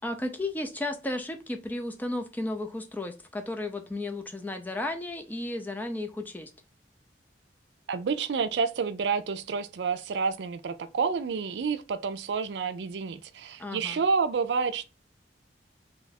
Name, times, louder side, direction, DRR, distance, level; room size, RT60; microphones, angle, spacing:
voice 1, 0.0-6.5 13.6-14.0, left 2 dB, 10° left, 0.5 m, -34 dB
voice 2, 7.9-14.8, right 5 dB, 75° right, 0.4 m, -29 dB
3.0 x 2.3 x 4.0 m
head